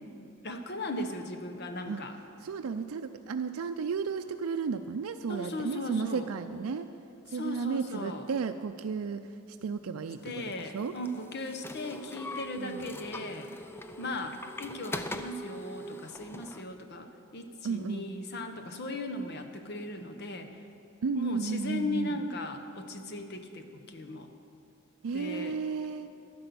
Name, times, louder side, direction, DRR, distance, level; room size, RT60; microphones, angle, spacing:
voice 1, 0.4-2.1 5.3-6.3 7.3-8.3 10.2-13.5 14.0-20.6 21.1-24.3 25.1-25.5, left 2 dB, 50° left, 6 dB, 0.9 m, -37 dB
voice 2, 2.4-6.9 7.3-10.9 12.6-12.9 17.6-18.1 21.0-22.2 25.0-26.1, right 5 dB, 90° right, 8 dB, 0.4 m, -33 dB
sound 1, 10.3-16.6, left 1 dB, 10° left, 0.4 m, -42 dB
11.5 x 10.0 x 6.9 m, 2.6 s
head